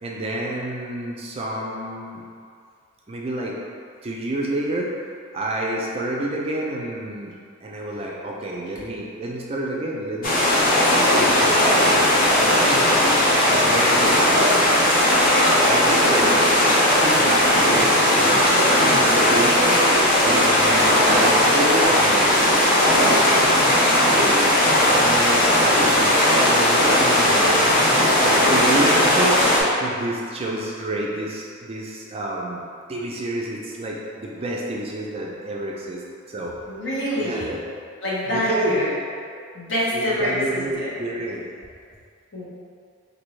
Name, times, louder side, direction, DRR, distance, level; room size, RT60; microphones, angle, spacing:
voice 1, 0.0-2.2 3.1-3.6 4.0-4.9 5.3-7.3 7.6-10.4 10.8-12.9 13.5-14.7 15.6-16.3 17.0-18.7 19.0-22.5 23.2-23.6 24.0-24.5 24.9-26.2 26.5-27.9 28.2-32.6 32.9-36.0 36.3-36.6 37.1-37.7 38.3-38.8 39.9-41.5, right 1 dB, 30° right, -2 dB, 0.4 m, -29 dB
sound 1, 10.2-29.6, left 1 dB, 45° left, 0.7 m, -17 dB
voice 2, 18.8-19.1 27.4-27.8 36.7-37.5 38.0-38.9 39.5-40.9 42.3-42.5, equal, 65° left, -8 dB, 1.1 m, -26 dB
4.2 x 2.7 x 3.1 m, 2.2 s
head